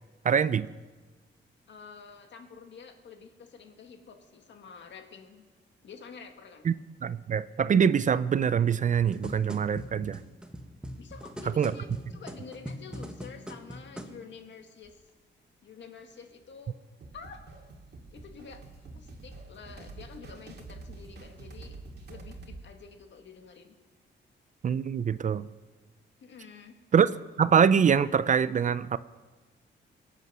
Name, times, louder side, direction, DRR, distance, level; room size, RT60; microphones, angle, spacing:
voice 1, 0.2-0.7 6.7-6.8 7.0-10.2 11.6-11.7 24.6-25.5 26.9-27.1 27.4-29.0, right 7 dB, 40° right, 16 dB, 0.4 m, -24 dB
voice 2, 1.7-5.4 5.8-6.7 11.0-15.0 15.6-16.8 17.1-17.4 18.1-18.6 18.9-21.8 22.1-23.8 26.2-26.8, left 6 dB, 65° left, 5 dB, 1.8 m, -48 dB
sound 1, 8.8-14.2 14.8-14.9, equal, 5° right, 1.3 m, -41 dB
sound 2, 17.0-22.6, right 3 dB, 55° right, 2.1 m, -46 dB
23.5 x 8.3 x 6.2 m, 1.3 s
cardioid pair, 125°, 20 cm